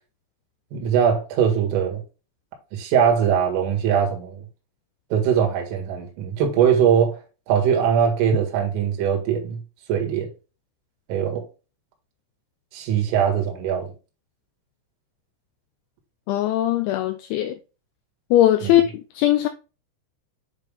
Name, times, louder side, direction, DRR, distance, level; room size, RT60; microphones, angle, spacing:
voice 1, 0.7-2.0 2.7-4.4 5.1-7.2 7.5-9.6 9.9-10.3 11.1-11.5 12.7-13.9 18.6-18.7, right 8 dB, 75° right, 4.3 m, -21 dB
voice 2, 16.3-17.6 18.3-18.8 19.2-19.5, left 13 dB, 85° left, 2.6 m, -19 dB
9.4 x 3.6 x 3.4 m
omnidirectional pair, 6.0 m